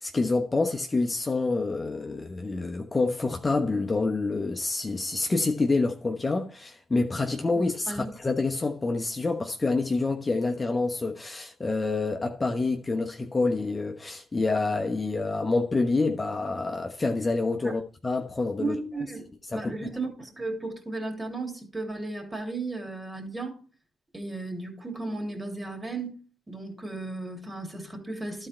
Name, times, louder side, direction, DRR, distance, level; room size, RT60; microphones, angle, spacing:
voice 1, 0.0-18.7 19.5-19.9, left 3 dB, 30° left, 1.0 m, -27 dB
voice 2, 18.6-19.2 19.5-23.6 24.1-26.2 26.5-28.5, right 2 dB, 20° right, 3.2 m, -34 dB
12.0 x 4.4 x 4.5 m
supercardioid pair, 55°, 0 cm